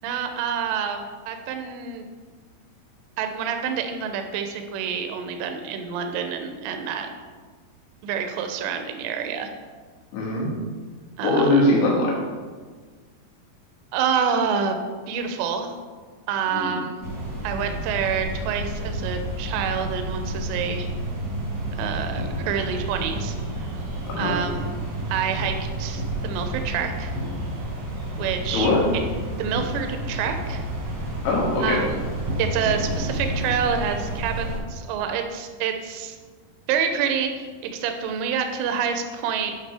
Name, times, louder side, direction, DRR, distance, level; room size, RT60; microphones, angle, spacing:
voice 1, 0.0-2.1 3.2-7.1 8.0-9.5 11.2-11.6 13.9-14.8 15.1-15.8 16.3-17.0 17.4-20.9 21.7-23.4 24.2-24.7 25.1-27.1 28.2-28.7 29.4-30.6 31.6-32.0 32.4-36.2 36.7-39.5, right 7 dB, 80° right, 6 dB, 2.8 m, -27 dB
voice 2, 10.1-10.5 11.2-12.1 16.5-16.8 24.1-24.4 28.5-28.8 31.2-31.8, left 2 dB, 80° left, -4 dB, 4.0 m, -21 dB
sound 1, 17.0-34.6, right 1 dB, 60° right, 2.1 m, -30 dB
9.2 x 5.6 x 3.4 m, 1.5 s
omnidirectional pair, 5.2 m